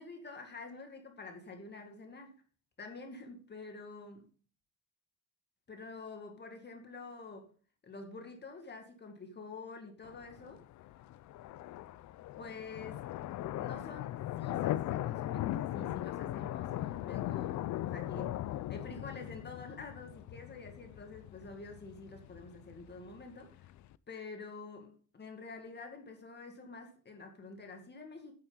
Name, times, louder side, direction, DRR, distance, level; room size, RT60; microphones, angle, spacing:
voice 1, 0.0-2.4 2.8-4.3 5.7-7.5 7.8-10.6 12.4-13.1 13.5-18.4 18.7-23.7 24.1-28.3, left 3 dB, 35° left, 2.0 m, -48 dB
sound 1, 10.0-23.9, left 14 dB, 65° left, 0.6 m, -39 dB
9.5 x 8.9 x 3.9 m
cardioid pair, 110°, 31 cm